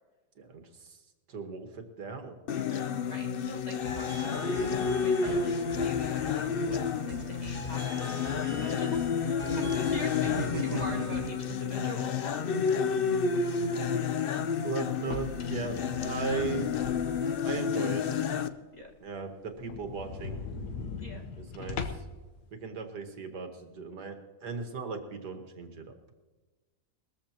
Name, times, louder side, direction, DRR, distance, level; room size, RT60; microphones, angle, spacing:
voice 1, 0.4-1.0 1.3-2.4 5.2-5.4 9.4-9.8 10.5-11.8 13.6-14.0 14.6-16.8 17.4-18.0 19.0-20.4 21.4-22.0 22.5-25.9, right 4 dB, 85° right, 5 dB, 2.1 m, -37 dB
sound 1, 2.5-18.5, left 6 dB, 60° left, 0.5 m, -30 dB
voice 2, 3.1-4.5 5.0-9.1 9.6-12.6 18.7-18.9 21.0-21.2, left 1 dB, 25° left, 0 dB, 1.7 m, -43 dB
sound 2, 3.8-11.2, equal, 30° right, 4.4 m, -42 dB
sound 3, 14.9-17.5 17.9-18.0 18.4-18.5 18.8-18.9 19.2-19.3 19.6-22.2, left 5 dB, 85° left, 1.6 m, -40 dB
21.0 x 14.0 x 2.9 m, 1.2 s
omnidirectional pair, 1.7 m